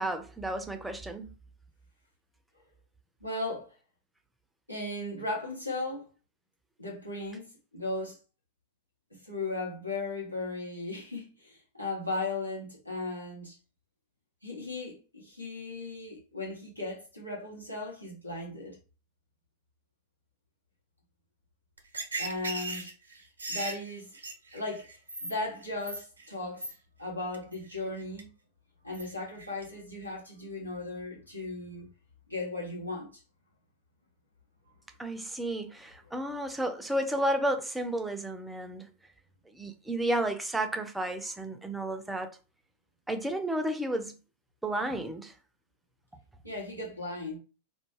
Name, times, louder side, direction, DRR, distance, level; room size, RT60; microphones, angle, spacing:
voice 1, 0.0-1.3 35.0-38.9 39.5-42.4 43.1-44.2 44.6-45.3, right 1 dB, 5° right, 0.4 m, -32 dB
voice 2, 3.2-3.7 4.7-6.1 6.8-8.2 9.2-13.6 14.4-18.8 22.2-22.9 23.5-24.2 24.5-26.7 27.0-28.3 28.8-31.9 32.3-33.2 36.1-36.2 46.4-47.4, left 2 dB, 90° left, 0.9 m, -37 dB
sound 1, 21.8-25.3 25.6-26.3 26.6-26.7 27.3-27.5 28.0-28.2 28.9-29.1 29.4-29.6, right 2 dB, 75° right, 0.5 m, -37 dB
2.2 x 2.0 x 3.1 m
figure-of-eight pair, 90°, 0 cm